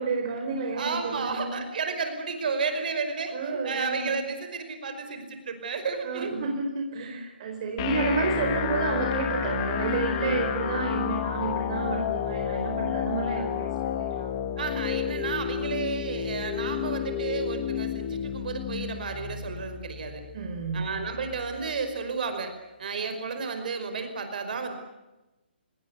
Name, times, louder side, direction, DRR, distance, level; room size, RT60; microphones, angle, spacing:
voice 1, 0.0-1.6 3.3-4.2 6.0-14.3 20.3-20.9, right 4 dB, 35° right, 2 dB, 4.8 m, -30 dB
voice 2, 0.7-6.4 14.6-20.2 20.7-22.5 22.8-24.7, right 5 dB, 50° right, 7 dB, 5.3 m, -32 dB
sound 1, 7.8-21.7, left 10 dB, 25° left, 2.0 m, -31 dB
28.0 x 19.5 x 8.3 m, 1.0 s
hypercardioid pair, 165°, 6 cm